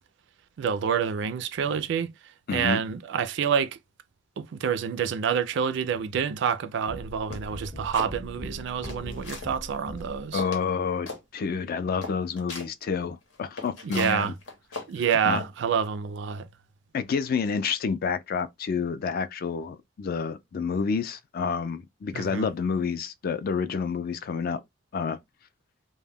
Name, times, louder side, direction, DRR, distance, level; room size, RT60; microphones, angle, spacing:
voice 1, 0.6-2.1 2.5-3.8 4.4-10.4 13.8-14.3 14.9-16.5 22.1-22.5, right 7 dB, 65° right, 0.3 m, -27 dB
voice 2, 2.5-2.8 10.3-14.3 15.2-15.4 16.9-24.6 24.9-25.2, left 5 dB, 50° left, 0.3 m, -29 dB
sound 1, 6.9-10.4, left 1 dB, 20° left, 0.7 m, -41 dB
sound 2, 7.3-8.1 8.6-9.5 10.0-10.1 10.4-10.7 11.1-11.2 11.6-11.7 12.0-12.7 13.3-15.5, left 3 dB, 85° left, 0.9 m, -38 dB
2.2 x 2.1 x 3.3 m
head